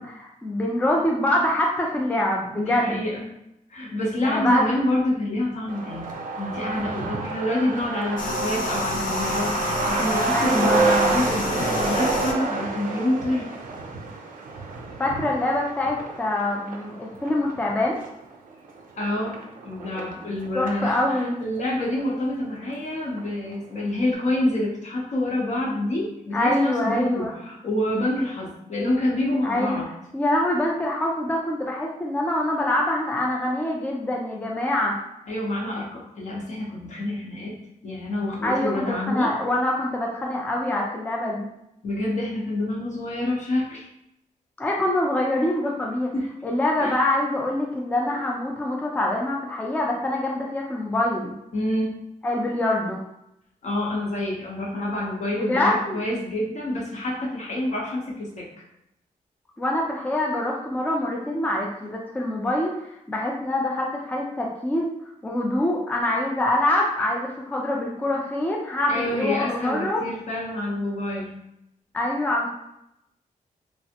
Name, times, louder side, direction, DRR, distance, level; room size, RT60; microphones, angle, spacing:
voice 1, 0.0-3.0 4.2-4.8 10.3-10.8 15.0-18.0 20.5-21.4 26.3-27.3 29.4-29.8 30.1-35.0 38.4-41.5 44.6-46.1 46.4-51.3 52.2-53.0 55.4-56.0 59.6-62.7 63.1-64.9 65.2-70.0 71.9-72.5, left 1 dB, 10° left, -2 dB, 0.4 m, -25 dB
voice 2, 2.6-3.2 3.7-6.1 6.4-13.5 19.0-19.4 19.6-29.9 35.3-39.3 41.8-43.9 46.1-46.3 46.8-47.0 51.5-51.9 53.6-58.5 68.9-71.4, left 1 dB, 60° left, -2 dB, 0.8 m, -27 dB
Truck, 5.7-20.9 21.2-21.3 21.5-22.4 22.7-22.8 23.2-23.5, right 3 dB, 80° right, 0.5 m, -28 dB
sound 1, 8.2-12.3, left 4 dB, 80° left, 0.4 m, -30 dB
3.3 x 2.0 x 2.8 m, 0.82 s
wide cardioid pair, 125°, 14 cm